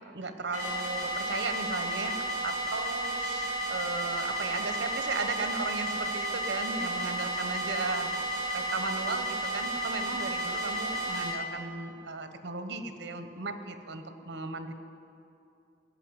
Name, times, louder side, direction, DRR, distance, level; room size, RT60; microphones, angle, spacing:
voice 1, 0.0-14.7, right 3 dB, 90° right, 8 dB, 0.9 m, -36 dB
sound 1, 0.5-11.3, right 1 dB, 85° left, 3.5 m, -32 dB
15.5 x 5.8 x 9.6 m, 2.6 s
head